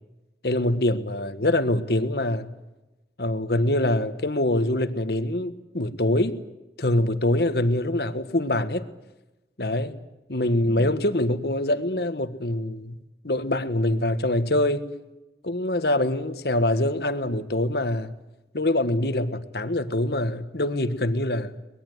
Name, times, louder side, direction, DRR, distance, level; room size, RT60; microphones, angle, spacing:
voice 1, 0.4-2.5 3.2-6.4 6.8-8.9 9.6-10.0 10.3-13.0 13.2-14.9 15.4-18.1 18.5-21.5, left 1 dB, 65° left, 1.6 m, -24 dB
23.0 x 21.0 x 8.1 m
head